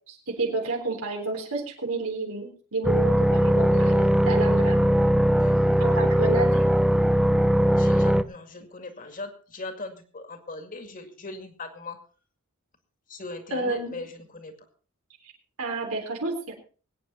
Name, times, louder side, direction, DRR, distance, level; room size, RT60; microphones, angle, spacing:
voice 1, 0.1-4.8 5.8-6.6 13.5-13.9 15.2-15.3 15.6-16.5, right 3 dB, 85° right, 0 dB, 3.8 m, -30 dB
sound 1, 2.8-8.2, equal, ahead, 0.5 m, -20 dB
voice 2, 5.4-5.9 7.8-12.0 13.1-14.5, left 3 dB, 40° left, 7 dB, 2.3 m, -39 dB
22.0 x 9.3 x 4.1 m, 0.39 s
head